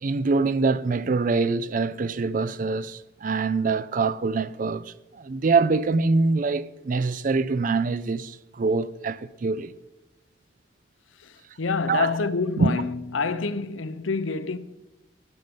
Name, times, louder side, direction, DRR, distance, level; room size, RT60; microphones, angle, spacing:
voice 1, 0.0-9.7 11.9-12.1 12.6-12.7, right 4 dB, 40° right, 0.4 m, -24 dB
voice 2, 11.2-14.6, left 4 dB, 85° left, 0.8 m, -27 dB
11.5 x 10.5 x 5.4 m
head